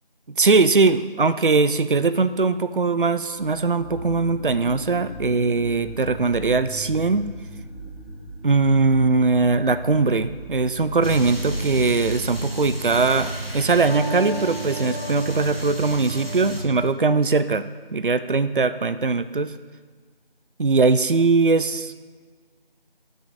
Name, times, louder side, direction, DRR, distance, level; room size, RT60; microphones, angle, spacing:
voice 1, 0.3-7.3 8.4-17.6 17.9-19.5 20.6-21.9, right 4 dB, 60° right, 12 dB, 0.4 m, -20 dB
sound 1, 3.2-13.8, right 1 dB, 70° left, 2.7 m, -37 dB
sound 2, 11.0-16.6, right 1 dB, 75° right, 1.7 m, -32 dB
9.7 x 6.3 x 4.9 m, 1.5 s
figure-of-eight pair, 180°, 30 cm